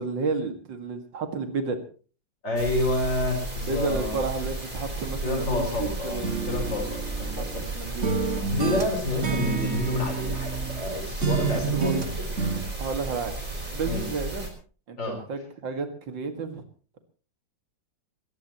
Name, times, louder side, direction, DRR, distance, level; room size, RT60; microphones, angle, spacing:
voice 1, 0.0-1.8 3.7-6.5 6.8-7.0 7.4-8.5 11.7-11.9 12.8-13.4 13.7-14.5 14.9-16.6, right 4 dB, 75° right, 6 dB, 2.7 m, -32 dB
voice 2, 2.4-4.2 5.2-7.6 8.5-12.2 13.9-14.0 15.0-15.2, left 2 dB, 75° left, 2 dB, 4.9 m, -29 dB
sound 1, 2.6-14.5, right 2 dB, 25° right, 4.6 m, -34 dB
sound 2, 6.2-7.7 8.0-10.9 11.2-12.6, right 6 dB, 40° right, 2.1 m, -29 dB
22.5 x 19.0 x 3.0 m, 0.39 s
omnidirectional pair, 2.0 m